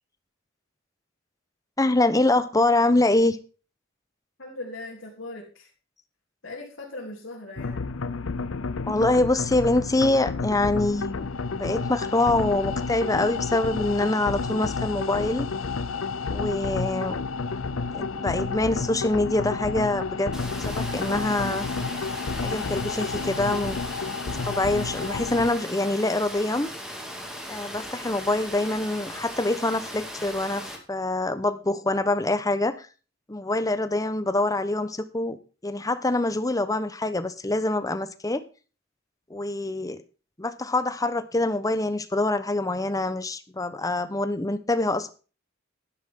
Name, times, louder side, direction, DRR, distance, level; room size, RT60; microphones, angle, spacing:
voice 1, 1.8-3.4 8.8-11.3 11.6-15.5 16.3-17.2 17.9-20.3 20.7-21.7 22.4-23.8 24.3-26.7 27.5-32.9 33.3-35.4 35.6-38.4 39.3-40.0 40.4-45.1, left 2 dB, 20° left, 11 dB, 1.0 m, -25 dB
voice 2, 4.4-5.7 6.4-7.8, left 2 dB, 70° left, -4 dB, 3.3 m, -39 dB
sound 1, 7.6-25.5, left 4 dB, 85° left, 0.7 m, -30 dB
Water, 20.3-30.8, equal, 5° right, 2.5 m, -38 dB
11.5 x 11.5 x 3.7 m, 0.35 s
head